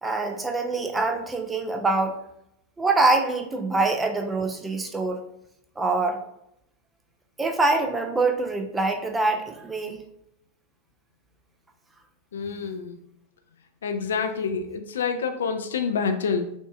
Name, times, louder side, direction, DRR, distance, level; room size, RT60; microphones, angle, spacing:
voice 1, 0.0-2.2 2.8-5.2 5.8-6.2 7.4-10.0, right 3 dB, 10° right, 4 dB, 0.5 m, -24 dB
voice 2, 12.3-13.0 13.8-16.6, left 5 dB, 65° left, 6 dB, 0.4 m, -27 dB
6.1 x 2.6 x 2.4 m, 0.78 s
figure-of-eight pair, 90°, 0 cm